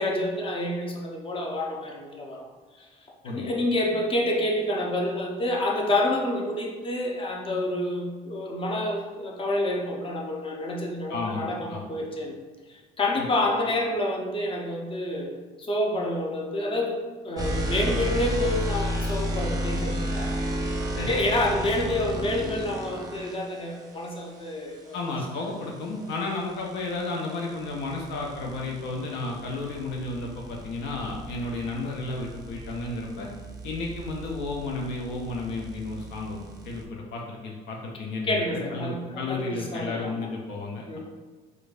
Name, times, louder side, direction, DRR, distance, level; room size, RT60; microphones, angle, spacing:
voice 1, 0.0-2.5 2.8-2.9 3.2-12.4 12.7-15.3 15.6-20.4 21.1-25.0 38.2-40.3 40.9-41.0, left 1 dB, 30° left, -1 dB, 0.8 m, -28 dB
voice 2, 11.1-11.9 13.2-13.3 21.0-21.1 24.9-33.3 33.6-41.0, left 3 dB, 70° left, -1 dB, 0.6 m, -33 dB
sound 1, 17.4-23.4 25.8-36.8, equal, 20° right, 0.7 m, -33 dB
4.5 x 2.5 x 2.5 m, 1.4 s
hypercardioid pair, 55°, 19 cm